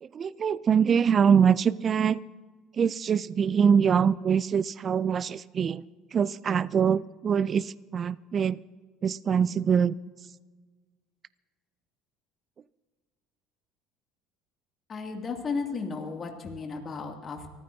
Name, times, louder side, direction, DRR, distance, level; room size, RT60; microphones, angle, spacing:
voice 1, 0.0-2.2 2.8-5.8 6.1-8.6 9.0-9.9, right 7 dB, 35° right, 0.3 m, -24 dB
voice 2, 14.9-17.5, left 4 dB, 35° left, 2.4 m, -34 dB
24.5 x 14.5 x 2.8 m
supercardioid pair, 105°, 0 cm